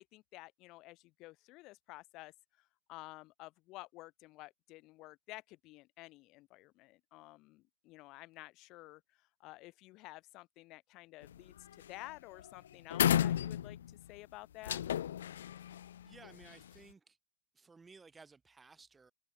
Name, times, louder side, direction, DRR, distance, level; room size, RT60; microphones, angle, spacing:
voice 1, 0.0-14.8, left 20 dB, 30° left, 7.4 m, -52 dB
sound 1, 11.2-11.5 11.8-12.1 12.4-12.5 12.9-14.0 14.6-16.7, left 10 dB, 55° left, 1.4 m, -33 dB
voice 2, 16.0-17.2 17.5-19.1, right 4 dB, 10° right, 4.4 m, -58 dB
figure-of-eight pair, 110°, 0 cm